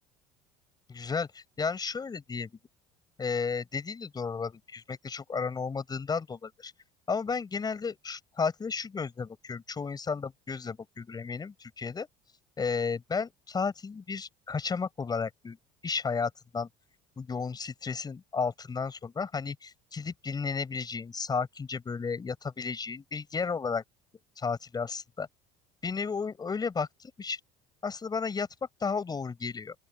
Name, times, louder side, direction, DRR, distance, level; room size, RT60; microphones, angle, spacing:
voice 1, 0.9-2.5 3.2-6.7 7.1-12.1 12.6-15.6 15.8-16.7 17.2-23.8 24.4-25.3 25.8-27.4 27.8-28.5 28.8-29.7, left 5 dB, 25° left, 5.4 m, -33 dB
open air
supercardioid pair, 105°, 16 cm